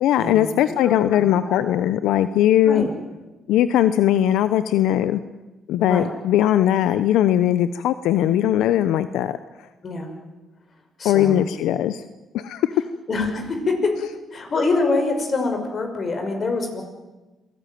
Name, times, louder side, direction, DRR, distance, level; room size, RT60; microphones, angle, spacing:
voice 1, 0.0-2.8 3.5-5.2 5.7-9.4 11.0-12.0 12.3-12.8, left 11 dB, 90° left, 13 dB, 0.7 m, -19 dB
voice 2, 0.8-1.6 2.6-2.9 5.9-6.1 9.8-10.1 11.0-11.5 13.1-13.9 14.3-16.8, left 3 dB, 45° left, 5 dB, 5.9 m, -25 dB
27.0 x 17.0 x 9.3 m, 1.1 s
cardioid pair, 90°, 0 cm